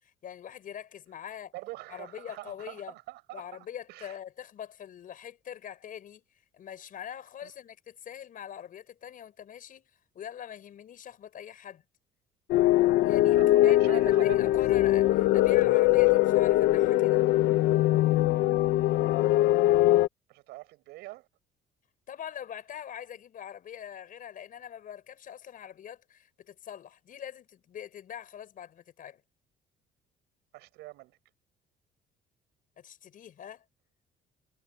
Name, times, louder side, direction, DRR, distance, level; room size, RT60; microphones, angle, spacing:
voice 1, 0.0-1.5 1.9-2.9 3.3-6.2 6.5-11.8 13.0-17.2 22.1-29.2 32.8-33.6, left 9 dB, 55° left, 7.1 m, -43 dB
voice 2, 1.5-3.4 3.9-4.2 7.4-7.5 13.3-14.6 20.3-21.2 30.5-31.2, right 19 dB, 90° right, 6.0 m, -42 dB
sound 1, 12.5-20.1, left 15 dB, 85° left, 1.2 m, -22 dB
cardioid pair, 110°, 17 cm